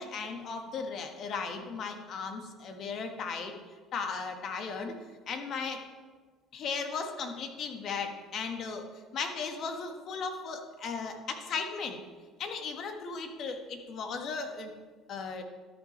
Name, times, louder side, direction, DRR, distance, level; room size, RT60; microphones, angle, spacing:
voice 1, 0.0-3.5 3.9-5.0 5.3-5.8 6.5-8.8 9.1-12.0 12.4-14.7 15.1-15.4, left 5 dB, 55° left, 5 dB, 1.4 m, -36 dB
12.5 x 6.6 x 4.4 m, 1.4 s
supercardioid pair, 85°, 0 cm